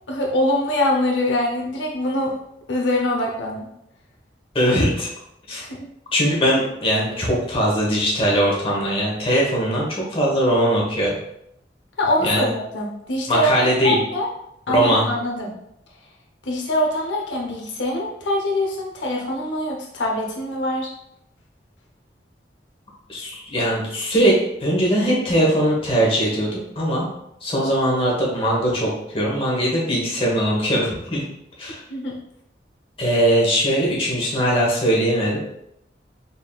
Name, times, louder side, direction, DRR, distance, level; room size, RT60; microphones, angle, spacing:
voice 1, 0.1-2.3 2.7-3.7 5.6-5.9 12.0-12.5 12.7-13.5 13.8-14.3 14.7-15.5 16.4-20.9 31.9-32.2, left 1 dB, 85° left, -1 dB, 0.7 m, -23 dB
voice 2, 4.5-5.1 5.5-5.6 6.1-11.2 12.2-12.5 13.3-14.0 14.7-15.0 23.1-27.1 27.4-31.2 31.6-31.8 33.0-35.4, equal, 30° left, -4 dB, 1.1 m, -20 dB
4.1 x 3.6 x 2.3 m, 0.78 s
head